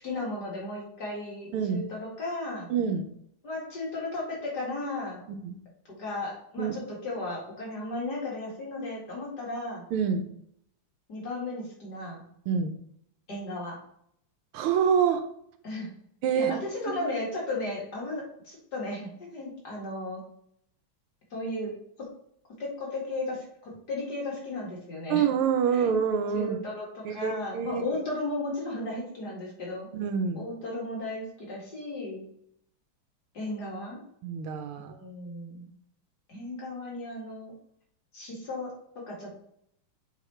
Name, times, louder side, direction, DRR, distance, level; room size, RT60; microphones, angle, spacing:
voice 1, 0.0-2.7 3.4-5.3 5.9-9.8 11.1-12.3 13.3-13.8 15.6-15.9 16.3-20.2 21.3-21.7 22.6-25.3 25.7-25.9 26.3-29.9 30.3-32.2 33.3-34.0 34.8-35.7 36.3-37.5 38.1-38.7 39.1-39.4, left 2 dB, 50° left, -3 dB, 2.6 m, -35 dB
voice 2, 1.5-1.8 2.7-3.0 5.3-5.6 6.6-6.7 9.9-10.3 12.5-12.8 14.5-15.2 16.2-16.5 16.9-17.0 25.1-26.6 27.0-27.8 29.9-30.4 34.2-34.9, right 7 dB, 80° right, 7 dB, 1.6 m, -26 dB
7.1 x 3.8 x 4.3 m, 0.69 s
omnidirectional pair, 2.4 m